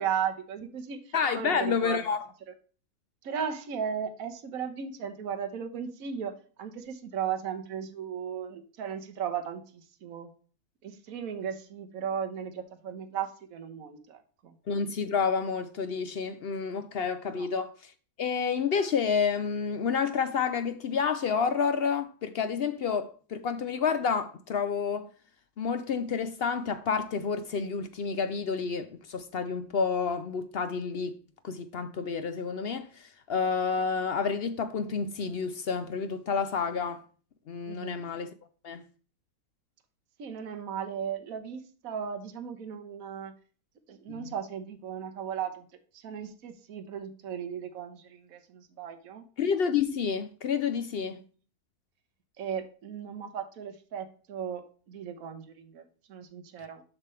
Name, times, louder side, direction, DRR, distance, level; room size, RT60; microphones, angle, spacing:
voice 1, 0.0-2.0 3.2-10.3 10.8-14.5 17.3-17.5 37.7-38.0 40.2-43.3 43.9-45.7 45.9-49.2 51.0-51.1 52.4-55.8 56.1-56.8, right 8 dB, 65° right, 1.4 m, -36 dB
voice 2, 1.1-2.2 14.7-17.9 18.2-25.1 25.6-31.1 31.4-37.0 37.5-38.3 38.6-38.8 44.1-44.3 49.4-51.2, left 6 dB, 65° left, 0.6 m, -29 dB
7.3 x 6.0 x 3.1 m
omnidirectional pair, 1.6 m